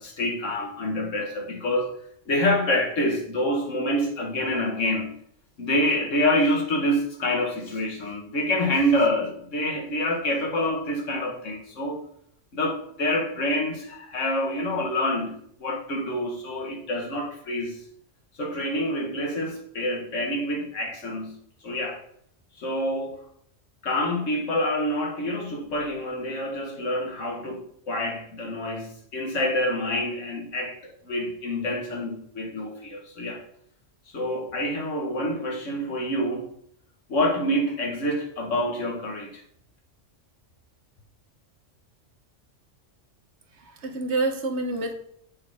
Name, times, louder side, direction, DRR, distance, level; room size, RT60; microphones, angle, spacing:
voice 1, 0.0-1.9 2.3-5.2 5.6-12.0 12.5-17.8 18.4-22.0 22.6-23.2 23.8-33.4 34.1-36.5 37.1-39.4, left 1 dB, 85° left, 1.8 m, -27 dB
voice 2, 43.5-44.9, right 2 dB, 65° right, 1.2 m, -28 dB
8.3 x 4.3 x 4.8 m
omnidirectional pair, 1.3 m